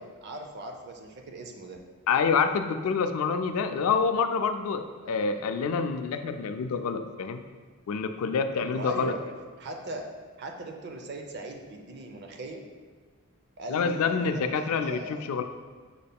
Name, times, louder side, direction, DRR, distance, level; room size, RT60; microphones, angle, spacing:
voice 1, 0.0-1.8 5.0-5.4 8.7-9.2 9.6-10.1 10.4-12.6 13.6-15.3, right 2 dB, 50° right, 3 dB, 0.5 m, -39 dB
voice 2, 2.1-7.4 7.9-9.1 13.7-15.4, left 5 dB, 70° left, 7 dB, 0.3 m, -27 dB
6.5 x 3.5 x 2.2 m, 1.5 s
head